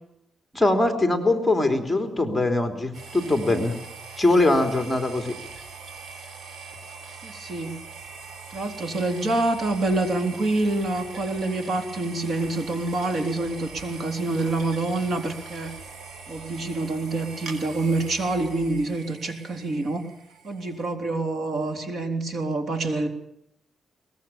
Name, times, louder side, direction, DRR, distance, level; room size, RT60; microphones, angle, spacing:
voice 1, 0.5-3.7 4.2-5.4, left 2 dB, 5° left, 5 dB, 3.2 m, -22 dB
sound 1, 2.9-20.9, right 4 dB, 75° right, 4.5 m, -42 dB
voice 2, 7.2-7.7 8.5-15.8 16.3-20.1 20.4-23.1, right 2 dB, 50° right, 5 dB, 3.7 m, -26 dB
23.0 x 20.0 x 7.2 m, 0.80 s
cardioid pair, 130°, 0 cm